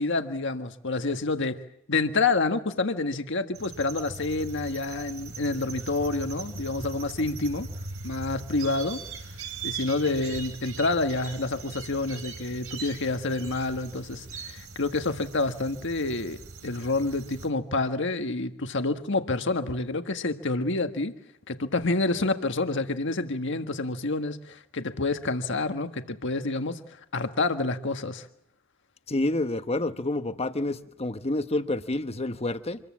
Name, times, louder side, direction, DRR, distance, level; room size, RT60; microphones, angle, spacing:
voice 1, 0.0-1.6 1.9-7.7 8.0-9.0 9.6-21.1 21.5-26.8 27.1-28.3, left 3 dB, 60° left, 8 dB, 1.6 m, -28 dB
sound 1, 3.5-17.5, right 4 dB, 85° right, 3.2 m, -40 dB
voice 2, 29.1-32.8, left 2 dB, 30° left, 10 dB, 1.1 m, -28 dB
26.5 x 22.0 x 7.5 m, 0.76 s
head